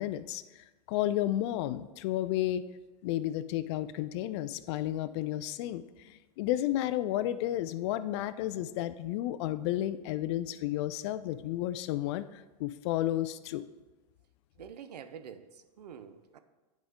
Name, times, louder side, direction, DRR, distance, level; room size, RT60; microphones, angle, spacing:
voice 1, 0.0-2.7 3.0-13.6, left 13 dB, 45° left, 0.4 m, -32 dB
voice 2, 14.6-16.4, right 7 dB, 85° right, 0.6 m, -47 dB
9.3 x 5.1 x 3.6 m
hypercardioid pair, 130°, 20 cm